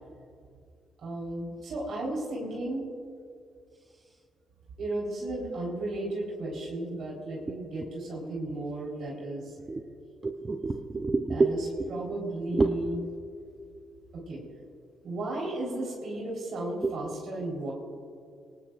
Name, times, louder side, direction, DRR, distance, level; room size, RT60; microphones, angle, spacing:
voice 1, 1.0-2.9 4.8-9.5 11.3-13.0 14.1-14.4 15.0-17.7, right 2 dB, 70° right, -3 dB, 4.1 m, -34 dB
voice 2, 10.2-11.5 12.5-12.7 16.8-16.9, right 3 dB, 30° right, 5 dB, 0.7 m, -26 dB
22.5 x 19.0 x 2.5 m, 2.3 s
cardioid pair, 95°, 0 cm